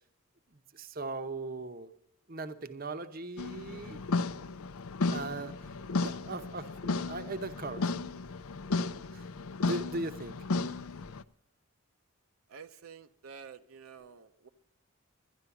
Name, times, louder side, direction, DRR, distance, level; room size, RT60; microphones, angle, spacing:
voice 1, 0.5-1.9 2.3-4.0 5.1-5.5 5.9-7.9 9.1-9.2 9.6-10.4, right 2 dB, 40° right, 0.8 m, -39 dB
sound 1, 3.4-11.2, left 3 dB, 75° left, 0.6 m, -34 dB
voice 2, 10.6-10.9 12.5-14.5, right 6 dB, 70° right, 0.6 m, -50 dB
12.5 x 11.0 x 7.0 m
head